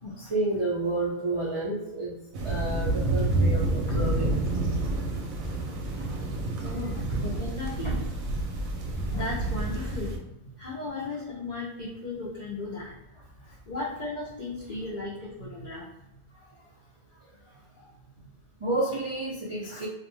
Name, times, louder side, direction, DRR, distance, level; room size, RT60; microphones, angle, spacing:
voice 1, 0.2-2.1 2.4-4.4 6.0-6.1 6.9-7.0 7.8-8.0 13.5-13.6 18.6-19.9, right 2 dB, 50° right, -8 dB, 0.3 m, -30 dB
sound 1, 2.3-10.2, right 2 dB, 80° right, 1.0 m, -29 dB
voice 2, 6.6-8.0 9.1-10.3 10.6-13.0 13.3-15.9, left 2 dB, 70° left, -5 dB, 0.4 m, -36 dB
2.5 x 2.1 x 3.0 m, 0.93 s
omnidirectional pair, 1.4 m